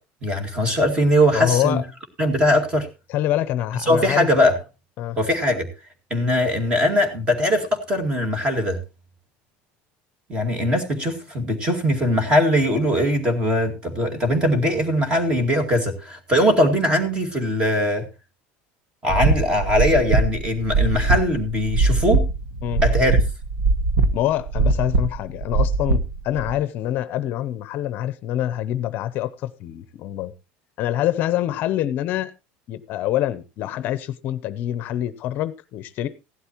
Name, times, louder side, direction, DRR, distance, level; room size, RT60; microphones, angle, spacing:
voice 1, 0.2-1.8 2.2-2.9 3.9-4.6 5.2-5.7 6.1-8.8 10.3-18.1 19.0-22.2 22.8-23.2, equal, 20° right, 2.2 m, -20 dB
voice 2, 1.3-1.8 3.1-4.3 5.0-5.2 22.6-22.8 24.1-30.3 30.8-32.3 32.7-36.1, left 12 dB, 40° left, 0.7 m, -25 dB
sound 1, 19.1-26.5, right 3 dB, 85° right, 1.4 m, -21 dB
16.0 x 12.0 x 2.9 m
cardioid pair, 175°, 5 cm